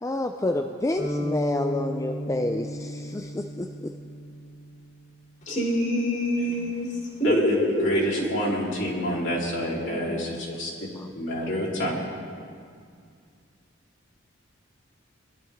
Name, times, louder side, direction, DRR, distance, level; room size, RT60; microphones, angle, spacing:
voice 1, 0.0-3.9 9.9-10.4 10.9-11.1, left 2 dB, 15° left, 5 dB, 0.4 m, -29 dB
sound 1, 1.0-5.2, equal, 80° left, 4.5 m, -34 dB
voice 2, 5.5-8.3, equal, 40° left, -3 dB, 3.2 m, -25 dB
voice 3, 7.2-10.7 11.2-12.0, equal, 65° left, -5 dB, 3.6 m, -28 dB
22.5 x 12.0 x 3.6 m, 2.2 s
head